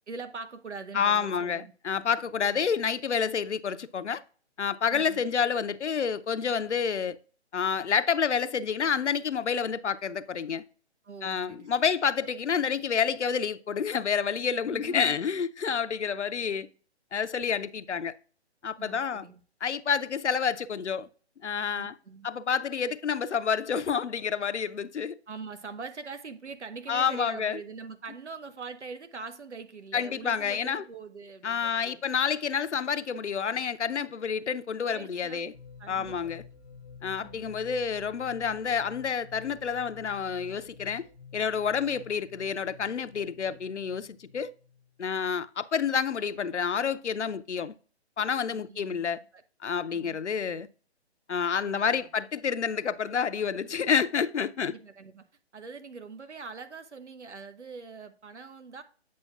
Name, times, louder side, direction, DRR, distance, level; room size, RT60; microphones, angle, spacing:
voice 1, 0.1-1.7 4.9-5.2 11.0-11.7 14.7-15.4 18.8-19.4 21.7-22.3 25.3-32.0 34.9-35.5 35.8-36.3 37.1-37.4 48.5-49.0 49.3-49.4 49.9-50.2 51.6-52.0 54.6-55.2 55.5-58.8, right 4 dB, 80° right, 1.0 m, -43 dB
voice 2, 0.9-4.2 4.6-7.2 7.5-10.6 11.2-16.7 17.1-18.1 18.6-19.2 19.6-21.1 21.4-21.9 22.2-25.2 26.9-27.6 29.9-30.8 31.4-35.5 35.9-36.4 37.0-41.0 41.3-44.5 45.0-47.7 48.2-49.2 49.6-50.7 51.3-54.7, left 6 dB, 80° left, 0.6 m, -29 dB
sound 1, 35.5-45.2, left 5 dB, 20° left, 0.6 m, -50 dB
8.5 x 6.2 x 2.3 m
figure-of-eight pair, 140°, 34 cm